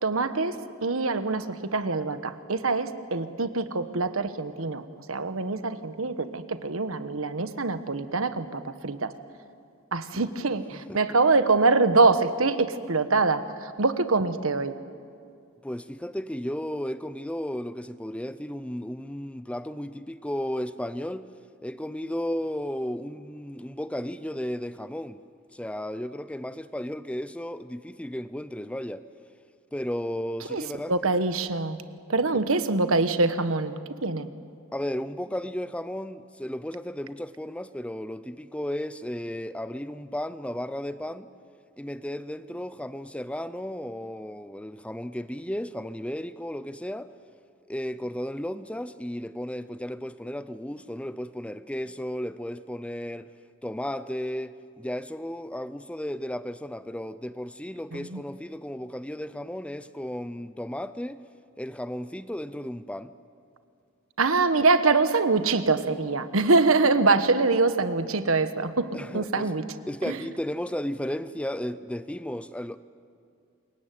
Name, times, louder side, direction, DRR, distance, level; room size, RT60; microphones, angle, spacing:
voice 1, 0.0-0.6 0.8-4.8 5.1-9.1 9.9-14.7 30.5-30.6 30.9-31.8 32.1-33.7 34.0-34.3 57.9-58.2 64.2-69.6 70.1-70.2, right 3 dB, 80° right, 1.3 m, -24 dB
voice 2, 15.6-21.3 21.6-25.2 25.5-29.1 29.7-30.9 32.3-32.4 34.7-41.3 41.8-47.1 47.7-53.3 53.6-61.2 61.6-63.1 68.9-69.5 69.9-72.8, equal, 5° left, 0.6 m, -34 dB
27.0 x 22.5 x 9.3 m
head